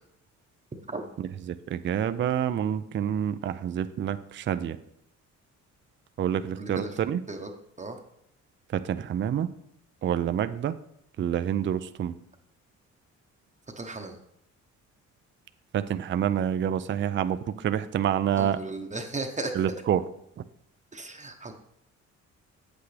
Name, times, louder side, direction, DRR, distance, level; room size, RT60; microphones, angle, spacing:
voice 1, 1.5-4.8 6.2-7.2 8.7-9.5 10.0-10.7 11.2-12.1 15.7-18.6 19.6-20.0, right 9 dB, 40° right, 11 dB, 0.4 m, -27 dB
voice 2, 6.6-7.0 7.3-7.5 7.8-8.0 13.8-14.2 18.4-19.6 20.9-21.5, right 2 dB, 25° right, 3 dB, 0.9 m, -35 dB
8.1 x 8.1 x 3.3 m, 0.75 s
cardioid pair, 90°, 30 cm